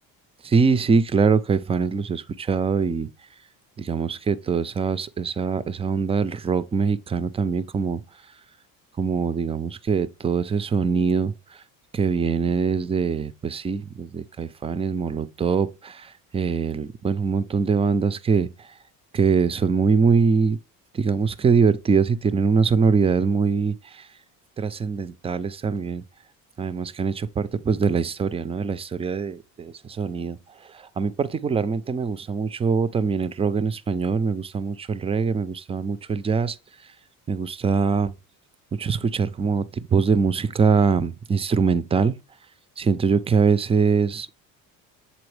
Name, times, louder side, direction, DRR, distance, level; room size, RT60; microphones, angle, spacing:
voice 1, 0.4-3.1 3.8-8.0 9.0-11.3 11.9-18.5 19.1-20.6 20.9-24.0 24.6-26.0 26.6-30.4 30.7-36.6 37.3-38.1 38.8-42.2 42.8-44.4, right 5 dB, 20° right, 0.3 m, -23 dB
7.0 x 4.2 x 3.2 m
cardioid pair, 105°, 36 cm